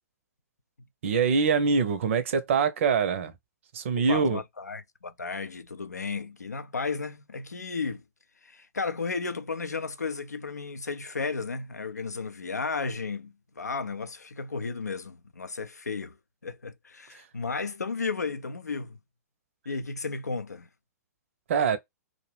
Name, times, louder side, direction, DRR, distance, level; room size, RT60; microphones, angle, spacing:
voice 1, 1.0-3.3 3.7-4.4 21.5-21.8, right 5 dB, 50° right, 0.6 m, -24 dB
voice 2, 4.0-8.0 8.4-16.2 16.4-19.0 19.7-20.7, left 4 dB, 80° left, 0.4 m, -34 dB
2.4 x 2.1 x 3.2 m
figure-of-eight pair, 110°, 9 cm